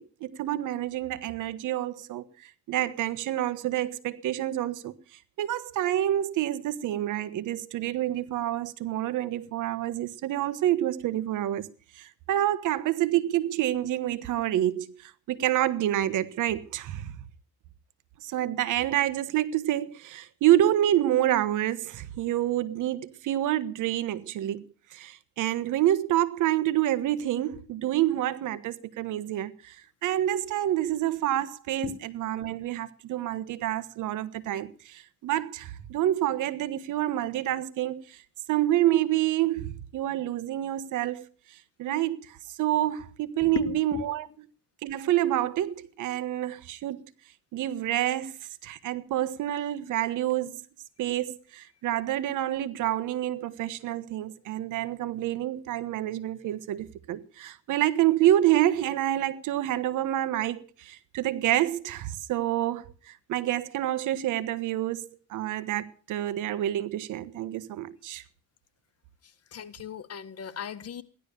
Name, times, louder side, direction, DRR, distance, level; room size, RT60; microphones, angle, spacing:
voice 1, 0.0-4.9 5.4-11.7 11.9-17.1 18.2-24.7 24.9-38.2 38.5-44.3 44.8-47.0 47.5-50.6 51.0-68.2, right 13 dB, 85° right, 1.3 m, -28 dB
voice 2, 43.4-44.0 69.5-71.0, left 8 dB, 55° left, 1.7 m, -36 dB
16.0 x 11.5 x 6.8 m
cardioid pair, 90°, 30 cm